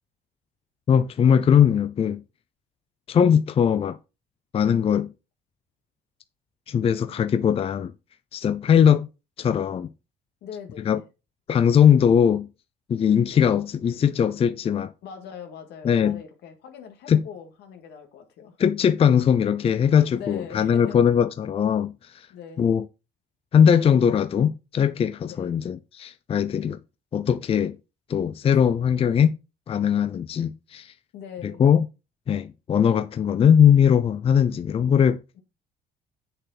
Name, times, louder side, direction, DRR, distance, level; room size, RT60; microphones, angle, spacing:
voice 1, 0.9-2.2 3.1-4.0 4.5-5.1 6.7-7.9 8.3-9.1 9.4-9.9 10.9-11.0 11.5-12.5 12.9-14.9 15.8-16.2 17.1-17.2 18.6-22.3 22.6-22.8 23.5-26.8 27.1-27.8 28.1-29.4 29.7-30.9 31.4-31.9 32.3-35.2, left 8 dB, 35° left, 0.5 m, -20 dB
voice 2, 10.4-11.0 15.0-18.6 20.1-21.0 22.3-22.7 25.2-25.6 31.1-31.6, left 7 dB, 80° left, 2.1 m, -41 dB
8.2 x 6.7 x 4.3 m
cardioid pair, 110°, 17 cm